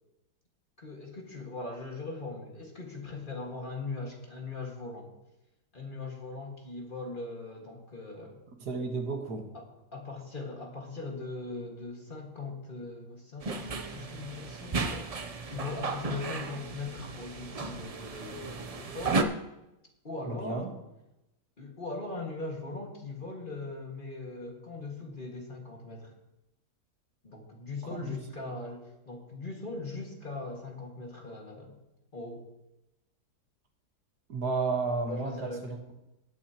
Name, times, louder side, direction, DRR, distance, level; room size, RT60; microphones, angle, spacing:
voice 1, 0.8-5.1 5.7-8.4 9.5-19.3 20.0-20.7 21.6-26.1 27.2-31.8 32.1-32.5 35.1-35.8, left 3 dB, 30° left, 0 dB, 2.0 m, -40 dB
voice 2, 8.6-9.5 20.2-20.7 27.9-28.5 34.3-35.3 35.6-35.8, right 4 dB, 75° right, 3 dB, 1.9 m, -32 dB
sound 1, 13.4-19.2, right 3 dB, 60° right, 0.4 m, -34 dB
18.5 x 8.7 x 3.0 m, 0.91 s
omnidirectional pair, 1.7 m